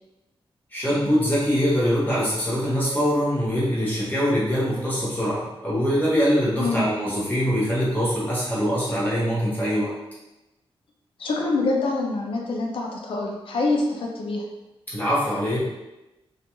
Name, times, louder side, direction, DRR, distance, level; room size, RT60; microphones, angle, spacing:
voice 1, 0.7-9.9 14.9-15.6, equal, 15° left, -9 dB, 0.8 m, -23 dB
voice 2, 11.2-14.4, left 3 dB, 65° left, 0 dB, 0.4 m, -25 dB
2.4 x 2.2 x 2.9 m, 0.98 s
wide cardioid pair, 165°, 10 cm